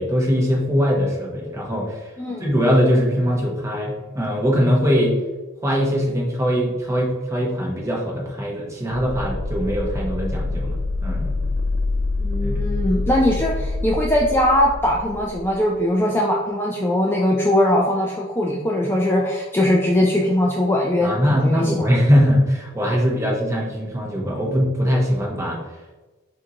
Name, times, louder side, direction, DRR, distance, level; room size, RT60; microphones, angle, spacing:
voice 1, 0.0-2.1 2.4-5.2 5.6-11.4 12.4-12.9 21.0-25.6, equal, 15° right, -2 dB, 0.8 m, -21 dB
voice 2, 2.2-2.5 12.2-21.9, left 1 dB, 10° left, -2 dB, 0.3 m, -20 dB
sound 1, 9.0-15.6, left 2 dB, 90° right, 0.5 m, -26 dB
5.9 x 2.6 x 2.8 m, 1.2 s
head